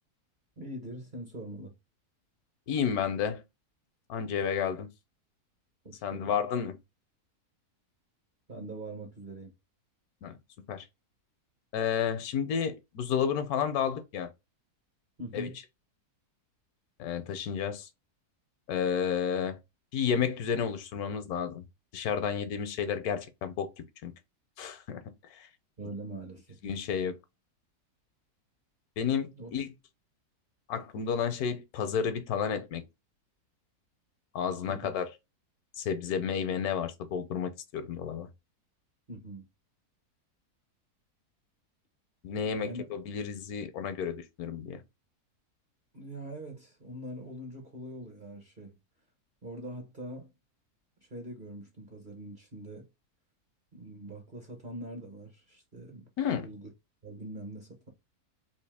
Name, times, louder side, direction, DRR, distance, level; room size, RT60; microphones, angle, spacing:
voice 1, 0.6-1.7 5.8-6.4 8.5-9.5 15.2-15.6 25.8-26.6 29.3-29.5 34.7-34.9 39.1-39.5 42.5-42.9 45.9-48.8 49.4-50.3 51.0-52.9 53.7-56.7 57.0-57.9, right 1 dB, 40° right, 0.8 m, -43 dB
voice 2, 2.7-3.4 4.1-4.9 6.0-6.8 10.2-10.4 10.7-10.9 11.7-14.3 15.3-15.5 17.0-17.9 18.7-19.6 19.9-21.6 21.9-24.1 24.6-25.5 26.6-27.2 29.0-29.7 30.7-32.8 34.3-35.1 35.8-38.3 42.2-44.8 56.2-56.5, left 7 dB, 75° left, 1.1 m, -31 dB
3.4 x 2.7 x 3.3 m
omnidirectional pair, 1.7 m